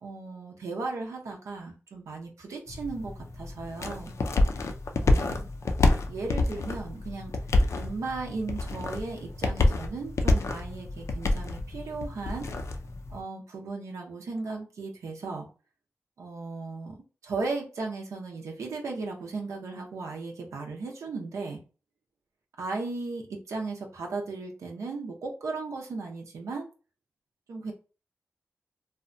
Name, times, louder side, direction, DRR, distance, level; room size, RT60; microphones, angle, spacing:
voice 1, 0.0-4.1 5.0-5.5 6.1-7.4 7.8-12.5 13.1-15.5 16.2-17.0 17.2-21.6 22.6-26.7 27.5-27.7, right 3 dB, 90° right, 0 dB, 0.6 m, -36 dB
sound 1, 2.7-13.2, left 2 dB, 70° left, 0.4 m, -28 dB
2.7 x 2.2 x 2.5 m, 0.34 s
cardioid pair, 45°, 5 cm